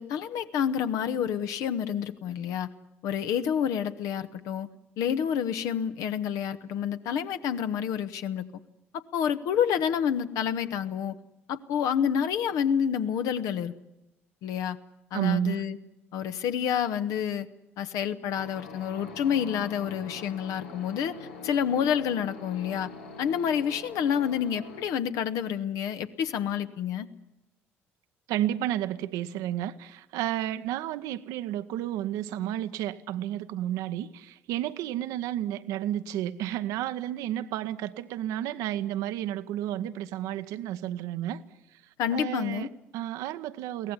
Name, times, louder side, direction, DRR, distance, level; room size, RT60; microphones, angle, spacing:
voice 1, 0.0-2.7 3.0-4.7 5.0-8.4 9.1-11.1 11.5-13.7 14.4-14.8 15.1-15.8 16.1-17.5 17.8-21.1 21.4-22.9 23.2-27.1 42.0-42.7, left 8 dB, 55° left, 10 dB, 1.2 m, -28 dB
voice 2, 15.1-15.6 28.3-41.4 42.1-43.9, right 12 dB, 60° right, 11 dB, 0.9 m, -31 dB
sound 1, 18.4-24.9, left 4 dB, 75° left, 1.6 m, -44 dB
23.0 x 17.5 x 9.9 m, 0.94 s
figure-of-eight pair, 50°, 7 cm